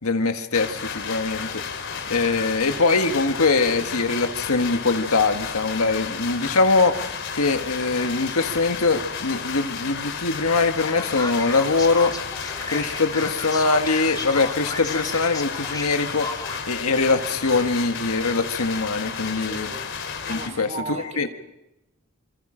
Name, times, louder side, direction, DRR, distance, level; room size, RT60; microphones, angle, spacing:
voice 1, 0.0-1.6 2.1-6.9 7.3-12.1 12.7-16.2 16.7-19.7 20.3-21.3, left 3 dB, 85° left, 1.6 m, -22 dB
sound 1, 0.5-20.5, left 6 dB, 60° left, 3.4 m, -32 dB
Male speech man speaking, 10.8-16.7, left 3 dB, 20° left, 2.8 m, -34 dB
voice 2, 19.4-19.9 20.2-21.3, right 3 dB, 35° right, 3.2 m, -36 dB
26.5 x 26.0 x 5.1 m
head